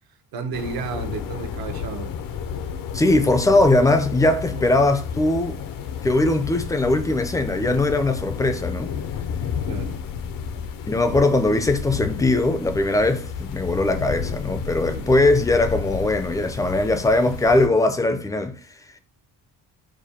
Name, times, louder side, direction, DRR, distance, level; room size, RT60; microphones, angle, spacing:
voice 1, 0.3-2.1 4.5-4.6 9.7-10.0 14.9-15.1, right 5 dB, 75° right, 0.9 m, -32 dB
sound 1, 0.5-17.7, left 7 dB, 65° left, 0.6 m, -31 dB
voice 2, 2.9-5.6 6.0-8.9 10.9-18.6, left 2 dB, 10° left, 0.4 m, -20 dB
5.0 x 2.2 x 4.1 m
cardioid pair, 155°, 36 cm